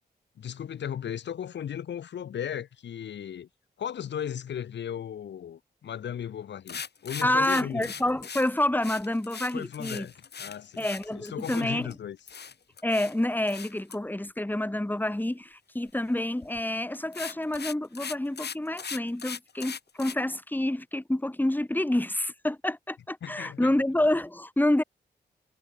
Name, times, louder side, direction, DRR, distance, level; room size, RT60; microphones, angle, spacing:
voice 1, 0.4-3.5 3.8-7.9 9.5-10.9 11.1-12.2 23.2-23.7, left 9 dB, 80° left, 1.9 m, -36 dB
sound 1, 6.7-11.9 12.3-13.1 13.5-14.0 16.4-16.6 16.9-20.1, left 6 dB, 65° left, 7.9 m, -39 dB
voice 2, 7.2-10.1 10.8-11.9 12.8-24.8, left 1 dB, 10° left, 2.2 m, -28 dB
cardioid pair, 55°, 18 cm